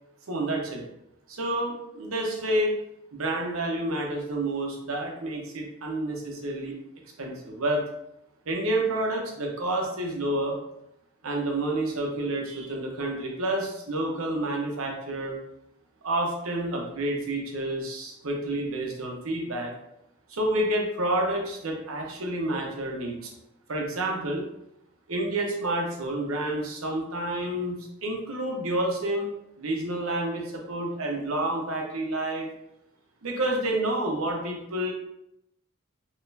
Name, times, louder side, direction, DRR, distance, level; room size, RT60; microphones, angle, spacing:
voice 1, 0.3-0.8 1.3-2.8 3.1-6.7 7.2-7.8 8.5-10.6 11.2-15.4 16.0-19.7 20.3-23.3 23.7-24.5 25.1-29.3 29.6-32.5 33.2-34.9, right 1 dB, 85° right, 0 dB, 0.9 m, -29 dB
4.1 x 3.1 x 2.7 m, 0.81 s
head